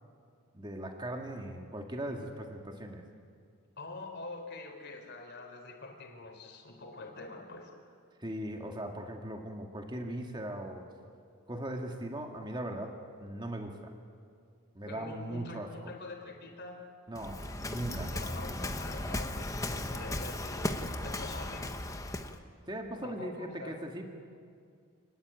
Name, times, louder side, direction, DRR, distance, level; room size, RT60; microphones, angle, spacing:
voice 1, 0.5-3.0 8.2-10.9 11.5-13.0 13.2-13.9 14.8-15.9 17.1-18.1 22.7-24.2, right 1 dB, 20° right, 3 dB, 1.9 m, -39 dB
voice 2, 3.8-7.7 14.9-16.9 18.1-21.7 23.0-23.8, left 2 dB, 50° left, 3 dB, 4.1 m, -45 dB
Waves surf, 17.1-22.4, left 1 dB, 15° left, 1.2 m, -36 dB
28.0 x 20.5 x 9.1 m, 2.2 s
head